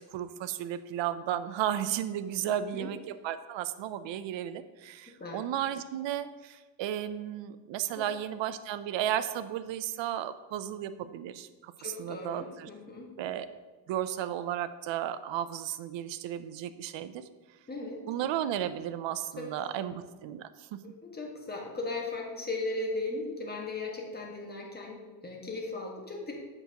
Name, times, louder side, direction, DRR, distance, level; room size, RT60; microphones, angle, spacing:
voice 1, 0.0-12.7 13.2-13.5 13.9-17.2 18.1-20.8, right 11 dB, 70° right, 12 dB, 0.6 m, -34 dB
voice 2, 11.8-13.1 17.7-18.0 19.4-19.5 19.7-19.9 20.8-26.3, left 2 dB, 20° left, -1 dB, 1.5 m, -37 dB
8.0 x 5.9 x 2.9 m, 1.3 s
cardioid pair, 100°, 46 cm